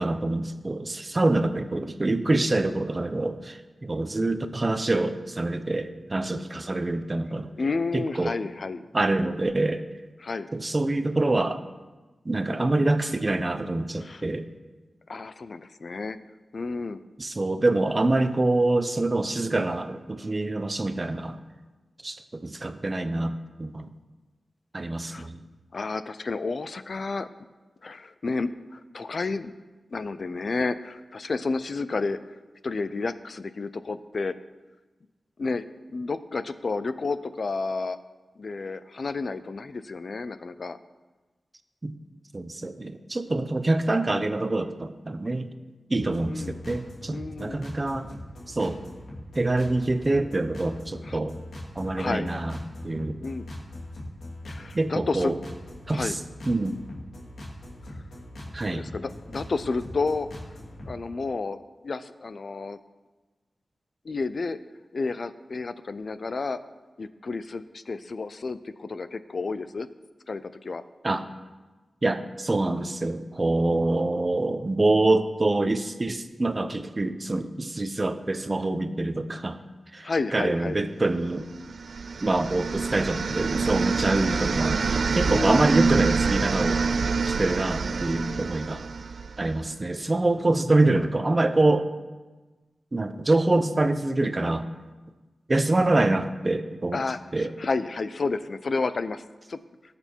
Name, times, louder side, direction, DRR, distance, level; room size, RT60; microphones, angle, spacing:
voice 1, 0.0-7.5 7.9-8.4 8.9-9.8 10.5-11.6 12.2-14.5 17.2-21.4 22.0-23.9 24.7-25.4 41.8-41.9 42.3-45.5 45.9-48.1 48.5-48.8 49.4-51.4 51.8-52.6 52.8-53.2 54.7-55.4 55.9-56.2 56.5-56.8 58.5-58.9 71.0-71.2 72.0-79.6 79.9-81.5 82.2-86.9 87.2-88.9 89.4-91.9 92.9-94.7 95.5-97.0 97.3-97.5, right 2 dB, 25° right, 9 dB, 0.7 m, -25 dB
voice 2, 7.6-8.9 10.2-10.5 14.0-14.2 15.1-16.2 16.5-17.0 25.1-25.3 25.7-27.3 27.8-29.5 29.9-32.2 32.6-34.3 35.4-38.0 38.4-40.8 46.3-46.6 47.1-47.6 51.1-51.2 52.0-52.3 53.2-53.5 54.5-55.3 55.9-56.1 57.9-58.0 58.7-60.3 60.9-62.8 64.0-64.6 64.9-66.6 67.0-69.9 70.3-70.8 80.0-80.8 85.3-85.7 96.9-99.2 99.5-99.6, left 3 dB, 50° left, 13 dB, 0.5 m, -31 dB
sound 1, 46.0-61.0, left 1 dB, 85° left, 2.7 m, -41 dB
sound 2, 81.6-89.6, right 4 dB, 65° right, 0.4 m, -26 dB
19.0 x 6.9 x 4.5 m, 1.2 s
wide cardioid pair, 130°, 0 cm